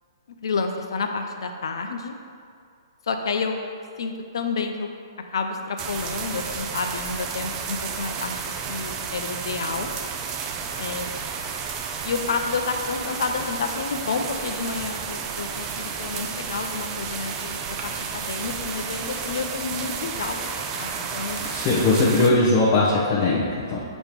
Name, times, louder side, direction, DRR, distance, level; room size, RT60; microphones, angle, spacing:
voice 1, 0.4-2.1 3.0-3.6 4.0-4.9 5.3-9.9 10.8-11.1 12.0-20.4 20.7-21.4, left 4 dB, 75° left, 5 dB, 0.7 m, -29 dB
sound 1, 5.8-22.3, right 6 dB, 25° right, 0.4 m, -32 dB
voice 2, 21.4-23.8, left 2 dB, 35° left, -7 dB, 1.1 m, -20 dB
7.9 x 3.1 x 5.2 m, 2.3 s
hypercardioid pair, 150°, 2 cm